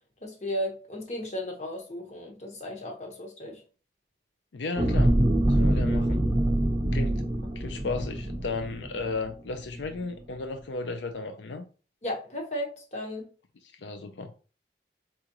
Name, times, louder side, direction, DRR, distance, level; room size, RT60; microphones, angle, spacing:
voice 1, 0.2-3.6 12.0-13.3, left 1 dB, 40° left, 1.2 m, -35 dB
voice 2, 4.5-5.1 5.5-6.2 6.9-7.2 7.6-11.6 13.6-14.3, left 3 dB, 85° left, 0.5 m, -34 dB
sound 1, 4.8-9.3 9.7-9.9, right 1 dB, 25° right, 0.8 m, -25 dB
4.2 x 3.7 x 3.0 m
head